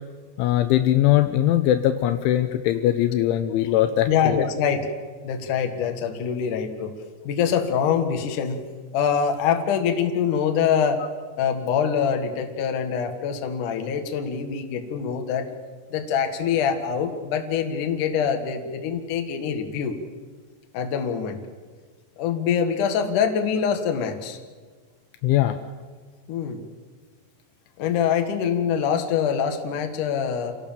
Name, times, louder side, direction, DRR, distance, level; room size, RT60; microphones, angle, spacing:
voice 1, 0.4-4.5 25.2-25.6, left 13 dB, 80° left, 9 dB, 3.0 m, -21 dB
voice 2, 4.1-4.9 5.2-6.9 7.2-8.6 8.9-11.0 11.4-15.5 15.9-19.9 20.7-21.4 22.2-24.4 26.3-26.6 27.8-30.5, left 7 dB, 60° left, 5 dB, 2.3 m, -24 dB
27.5 x 17.5 x 7.4 m, 1.5 s
omnidirectional pair, 5.9 m